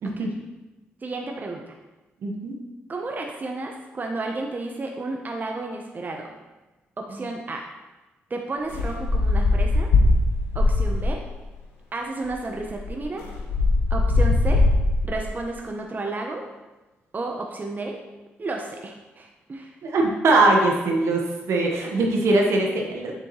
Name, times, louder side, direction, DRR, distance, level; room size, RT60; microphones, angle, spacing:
voice 1, 1.0-1.7 2.9-6.3 7.0-7.7 8.3-9.9 10.5-11.2 11.9-13.2 13.9-14.6 15.0-16.4 17.1-18.0 18.4-19.7, right 2 dB, 35° right, 2 dB, 0.9 m, -32 dB
voice 2, 2.2-2.5 19.8-23.1, right 2 dB, 70° right, 0 dB, 1.4 m, -21 dB
sound 1, 8.7-11.3 12.2-12.3 12.6-15.3, left 2 dB, 90° left, 1.0 m, -21 dB
7.2 x 6.7 x 3.2 m, 1.1 s
supercardioid pair, 55°, 5 cm